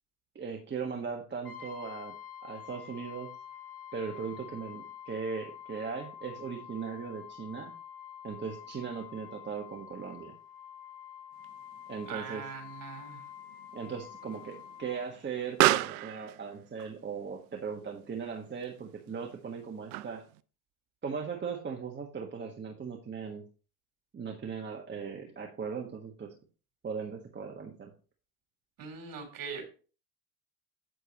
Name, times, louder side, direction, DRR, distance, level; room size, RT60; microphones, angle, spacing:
voice 1, 0.3-2.1 2.4-3.3 3.9-7.7 8.2-10.3 11.9-12.4 13.7-20.2 21.0-23.4 24.1-26.3 26.8-27.9, right 6 dB, 25° right, 1 dB, 1.5 m, -38 dB
Brass instrument, 1.4-15.1, left 9 dB, 50° left, 4.1 m, -47 dB
Explosion, 11.4-20.4, right 17 dB, 70° right, 0.6 m, -35 dB
voice 2, 12.0-13.2 28.8-29.7, right 6 dB, 45° right, 4 dB, 3.3 m, -41 dB
8.7 x 7.7 x 3.0 m, 0.37 s
hypercardioid pair, 75°, 45 cm